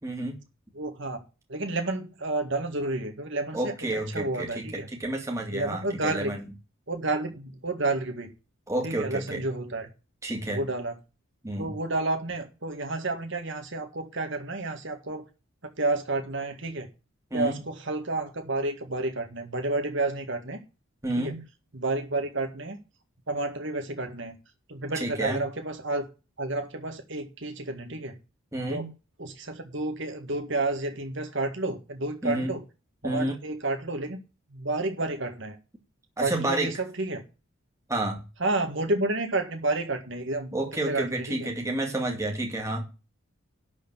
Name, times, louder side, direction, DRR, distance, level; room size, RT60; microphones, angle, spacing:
voice 1, 0.0-0.3 3.5-6.4 8.7-9.5 10.2-10.6 11.4-11.7 17.3-17.6 21.0-21.4 24.9-25.4 28.5-28.9 32.2-32.5 33.0-33.4 36.2-36.8 37.9-38.2 40.5-42.9, right 1 dB, 15° right, 1 dB, 2.5 m, -30 dB
voice 2, 0.8-1.2 1.5-4.9 5.5-6.3 6.9-8.3 8.8-9.9 10.5-10.9 11.6-15.2 15.8-16.9 17.3-20.6 21.2-21.3 21.7-22.8 23.3-24.3 24.7-26.1 26.4-28.2 28.7-28.8 29.2-32.6 33.0-34.2 34.5-35.6 36.2-37.2 38.4-40.6 40.8-41.5, right 2 dB, 60° right, 6 dB, 1.9 m, -30 dB
12.0 x 4.5 x 8.2 m, 0.30 s
head